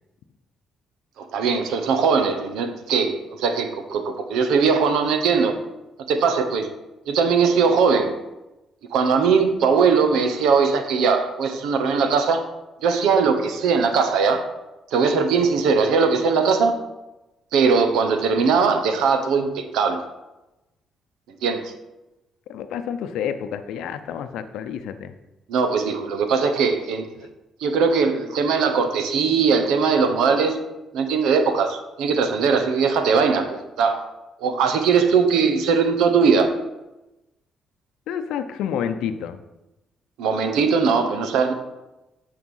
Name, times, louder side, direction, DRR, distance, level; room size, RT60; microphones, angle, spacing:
voice 1, 1.2-5.6 6.1-6.7 7.1-8.2 8.9-12.5 12.8-14.5 14.9-16.8 17.5-20.0 21.4-21.7 25.5-27.1 27.6-30.6 30.9-34.0 34.4-36.5 40.2-41.5, right 5 dB, 90° right, 7 dB, 1.0 m, -20 dB
voice 2, 22.5-25.1 38.1-39.4, left 8 dB, 85° left, 9 dB, 0.6 m, -29 dB
8.8 x 5.0 x 5.5 m, 0.99 s
cardioid pair, 90°, 0 cm